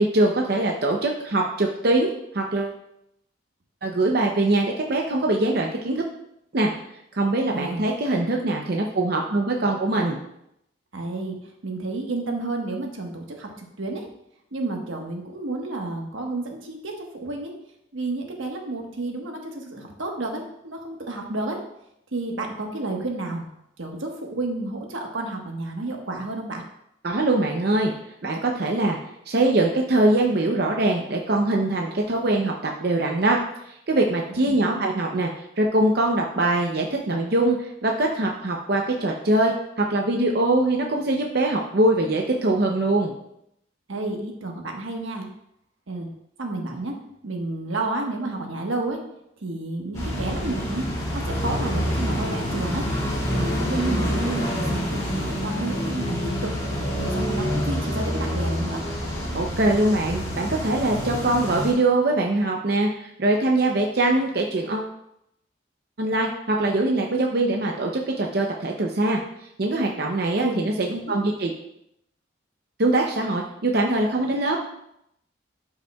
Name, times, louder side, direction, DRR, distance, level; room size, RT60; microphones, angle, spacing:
voice 1, 0.0-2.8 3.8-6.0 6.5-6.7 7.1-10.2 27.0-27.9 28.2-29.0 29.3-33.4 33.7-35.3 35.6-43.1 59.3-64.9 66.0-69.2 69.6-71.5 72.8-74.6, right 2 dB, 50° right, 1 dB, 0.6 m, -22 dB
voice 2, 7.5-8.2 10.9-11.3 11.6-14.1 14.5-17.5 17.9-21.6 22.1-23.5 23.8-26.6 34.5-34.6 43.9-45.3 45.9-46.1 46.4-46.9 47.2-49.0 49.4-50.9 51.1-52.8 53.3-56.5 56.8-58.8 70.4-70.6 70.9-71.0, right 2 dB, 85° right, 2 dB, 1.3 m, -31 dB
sound 1, 49.9-61.7, equal, 20° left, 2.6 m, -27 dB
11.5 x 5.6 x 2.3 m, 0.78 s
head